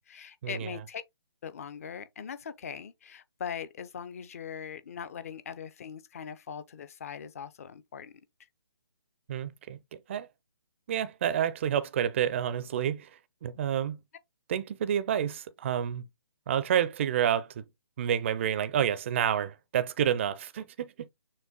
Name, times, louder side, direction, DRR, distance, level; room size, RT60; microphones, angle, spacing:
voice 1, 0.1-1.0 1.4-8.2, left 7 dB, 35° left, 0.5 m, -41 dB
voice 2, 9.3-9.8 10.1-10.3 10.9-13.1 13.4-14.0 14.5-16.0 16.5-17.6 18.0-21.1, right 9 dB, 25° right, 0.4 m, -29 dB
6.4 x 2.2 x 3.6 m
figure-of-eight pair, 140°, 14 cm